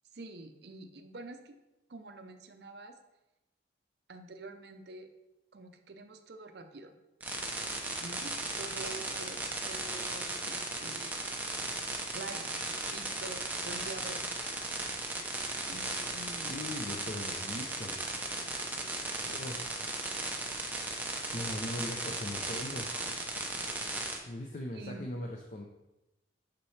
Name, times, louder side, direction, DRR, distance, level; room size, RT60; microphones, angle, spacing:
voice 1, 0.1-1.6 1.9-2.9 4.1-5.1 5.5-6.9 8.0-11.2 12.1-14.2 15.7-16.5 19.3-19.4 24.7-25.0, right 2 dB, 55° right, 7 dB, 0.6 m, -47 dB
sound 1, 7.2-24.2, right 2 dB, 10° right, 0.6 m, -36 dB
voice 2, 16.5-18.1 18.8-19.0 19.3-19.9 20.9-22.9 24.3-25.6, left 1 dB, 40° left, 1 dB, 0.5 m, -40 dB
8.4 x 4.3 x 3.2 m, 0.96 s
head